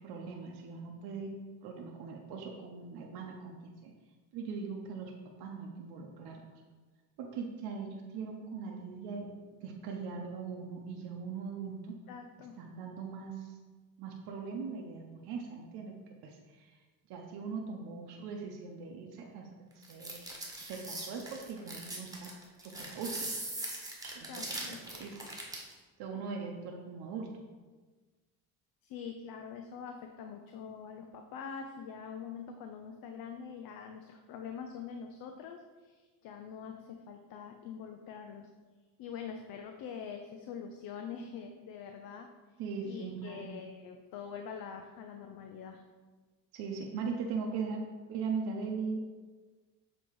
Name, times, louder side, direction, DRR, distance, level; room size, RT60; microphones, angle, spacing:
voice 1, 0.0-3.9 4.3-5.1 5.4-6.4 7.2-9.3 9.5-12.0 12.6-13.6 14.0-15.9 16.2-16.8 17.1-19.5 19.8-20.2 20.6-22.3 22.6-23.2 24.0-25.2 26.0-27.3 42.6-43.5 46.5-49.0, right 5 dB, 75° right, 0 dB, 0.9 m, -40 dB
voice 2, 12.1-12.6 24.3-24.8 28.8-38.5 39.0-42.3 42.8-45.8, left 6 dB, 65° left, 4 dB, 0.6 m, -44 dB
sound 1, 19.8-25.7, right 2 dB, 10° right, 1.4 m, -41 dB
7.5 x 3.1 x 4.7 m, 1.3 s
cardioid pair, 115°, 39 cm